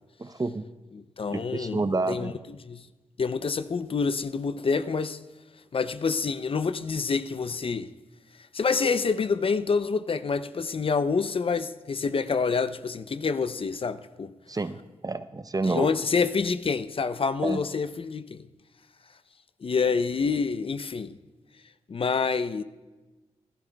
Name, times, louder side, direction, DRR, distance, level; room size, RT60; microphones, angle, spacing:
voice 1, 0.2-0.7 1.3-2.3 14.5-15.9 17.4-17.6, right 3 dB, 30° right, 0.6 m, -29 dB
voice 2, 1.0-2.3 2.6-2.9 3.2-5.2 5.7-7.9 8.5-14.3 15.6-18.5 19.6-21.2 21.9-22.6, left 5 dB, 45° left, 0.5 m, -27 dB
23.0 x 11.5 x 2.3 m
supercardioid pair, 40°, 13 cm